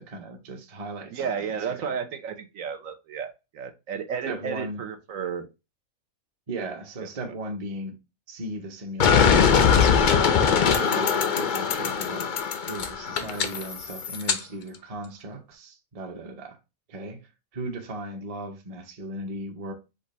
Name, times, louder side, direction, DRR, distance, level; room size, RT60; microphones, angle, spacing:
voice 1, 0.0-1.3 1.7-2.0 4.2-4.8 6.5-7.9 8.3-9.6 10.3-12.4 12.7-16.6 16.9-17.2 17.5-19.7, right 2 dB, 30° right, 0.7 m, -37 dB
voice 2, 1.1-5.5 7.0-7.3 10.9-11.0, right 7 dB, 70° right, 1.1 m, -33 dB
sound 1, 9.0-14.4, left 6 dB, 65° left, 0.4 m, -21 dB
5.2 x 2.4 x 4.0 m
omnidirectional pair, 1.5 m